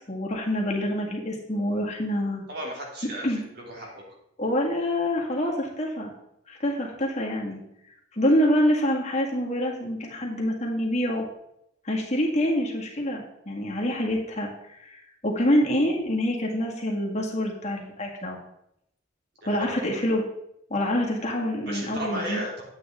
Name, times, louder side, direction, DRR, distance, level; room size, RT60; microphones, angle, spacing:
voice 1, 0.1-2.4 3.2-3.4 4.4-6.1 6.5-7.6 8.1-11.2 11.8-18.4 19.5-20.2 20.7-22.4, equal, 35° left, -1 dB, 1.9 m, -26 dB
voice 2, 2.5-4.0 19.4-19.9 21.7-22.6, right 1 dB, 60° right, -2 dB, 3.0 m, -35 dB
9.7 x 8.2 x 3.7 m, 0.78 s
head